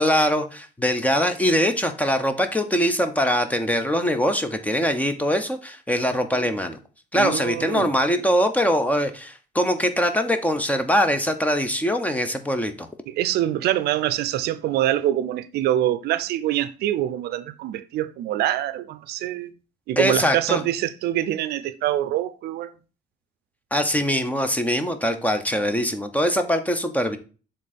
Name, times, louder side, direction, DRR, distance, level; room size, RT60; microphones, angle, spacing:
voice 1, 0.0-6.8 7.1-12.9 20.0-20.6 23.7-27.2, equal, 10° left, 0.8 m, -22 dB
voice 2, 7.1-8.0 13.1-19.5 19.9-22.7, right 13 dB, 75° right, 0.5 m, -25 dB
7.2 x 3.7 x 4.2 m
cardioid pair, 110°, 17 cm